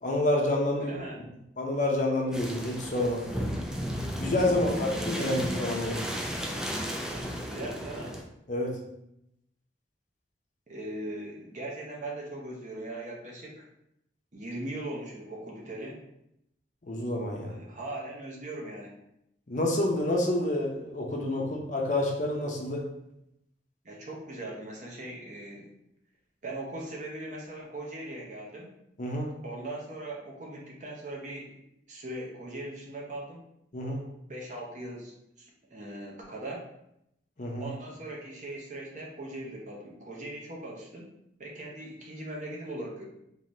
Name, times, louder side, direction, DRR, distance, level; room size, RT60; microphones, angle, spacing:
voice 1, 0.0-1.0 1.6-3.3 4.1-6.0 8.5-8.8 16.8-17.5 19.5-22.9 29.0-29.3 33.7-34.0 37.4-37.7, left 1 dB, 40° left, 0 dB, 0.6 m, -28 dB
voice 2, 0.8-1.2 4.5-5.2 7.4-8.2 10.7-13.6 14.3-16.0 17.5-18.9 23.8-25.7 26.4-28.7 29.4-31.6 31.9-33.4 34.3-36.6 37.6-41.1 41.4-43.0, right 1 dB, 40° right, -2 dB, 0.8 m, -40 dB
sound 1, 2.3-8.2, equal, 5° right, 0.3 m, -34 dB
3.8 x 2.6 x 3.1 m, 0.81 s
head